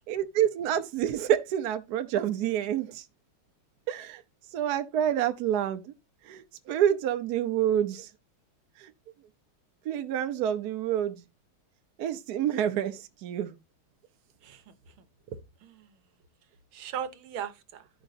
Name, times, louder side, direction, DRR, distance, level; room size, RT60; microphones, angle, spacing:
voice 1, 0.1-3.0 3.9-4.2 4.5-5.9 6.3-8.1 8.8-8.9 9.8-11.2 12.0-13.5, right 10 dB, 65° right, 1.1 m, -28 dB
voice 2, 14.4-15.9 16.7-17.9, right 8 dB, 80° right, 1.7 m, -39 dB
14.5 x 5.1 x 2.5 m
omnidirectional pair, 2.3 m